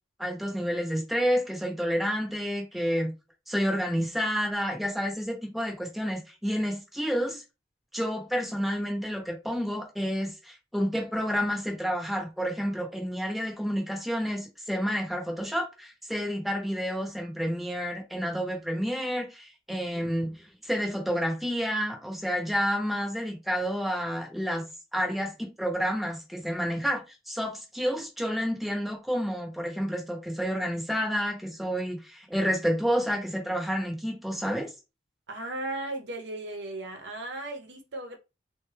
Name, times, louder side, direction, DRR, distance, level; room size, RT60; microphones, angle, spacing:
voice 1, 0.2-3.1 3.5-7.4 7.9-24.7 24.9-34.7, equal, ahead, 0.8 m, -29 dB
voice 2, 19.7-20.1 35.3-38.2, right 2 dB, 80° right, 0.7 m, -36 dB
3.6 x 2.2 x 3.2 m
head